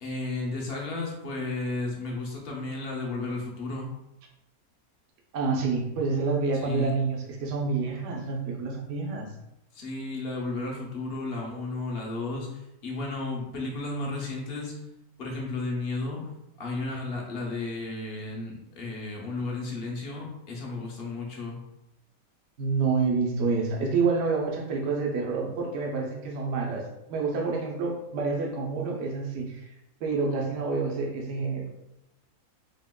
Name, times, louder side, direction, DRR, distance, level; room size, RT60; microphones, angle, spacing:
voice 1, 0.0-3.9 6.5-6.9 9.7-14.7 15.2-16.2 16.6-21.6, left 2 dB, 55° left, -1 dB, 0.7 m, -33 dB
voice 2, 5.3-9.3 22.6-26.8 27.1-29.6 30.0-31.6, right 4 dB, 60° right, 0 dB, 0.9 m, -28 dB
3.5 x 2.9 x 2.2 m, 0.87 s
omnidirectional pair, 1.6 m